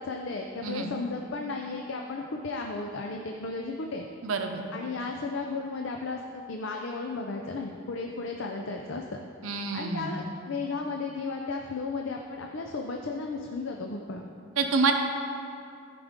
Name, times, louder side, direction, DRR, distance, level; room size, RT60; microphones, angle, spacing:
voice 1, 0.0-4.0 4.7-9.0 9.7-14.3, left 3 dB, 70° left, 2 dB, 0.5 m, -34 dB
voice 2, 4.2-4.6 9.4-10.1 14.6-14.9, right 4 dB, 90° right, 4 dB, 0.7 m, -27 dB
14.0 x 5.0 x 3.6 m, 2.5 s
head